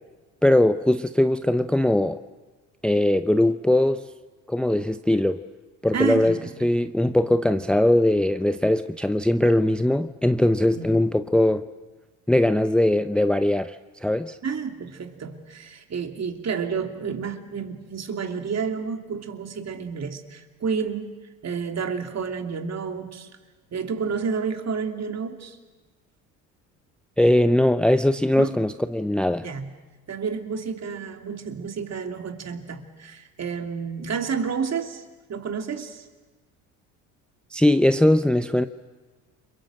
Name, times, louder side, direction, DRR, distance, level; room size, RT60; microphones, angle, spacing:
voice 1, 0.4-2.2 2.8-4.0 4.5-5.4 5.8-11.6 12.3-13.8 14.0-14.4 27.2-29.5 37.5-38.7, left 1 dB, ahead, 11 dB, 0.7 m, -20 dB
voice 2, 5.9-6.7 10.7-10.9 14.4-21.1 21.4-23.3 23.7-25.6 28.4-28.6 29.4-29.7 30.1-35.0 35.3-36.1, right 6 dB, 40° right, 6 dB, 2.9 m, -30 dB
29.5 x 22.5 x 7.8 m, 1.3 s
supercardioid pair, 75°, 39 cm